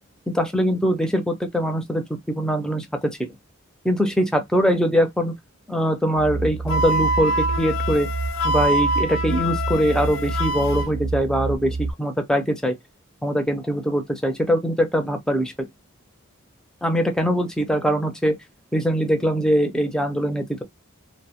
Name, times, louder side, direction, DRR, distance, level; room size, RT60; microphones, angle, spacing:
voice 1, 0.3-3.3 3.8-5.3 5.7-8.1 8.4-12.8 13.2-15.7 16.8-18.4 18.7-20.6, equal, 5° left, 0.4 m, -22 dB
sound 1, 6.1-11.9, right 3 dB, 85° right, 0.4 m, -28 dB
Wind instrument woodwind instrument, 6.7-10.9, right 1 dB, 65° left, 0.4 m, -25 dB
2.5 x 2.0 x 2.8 m
head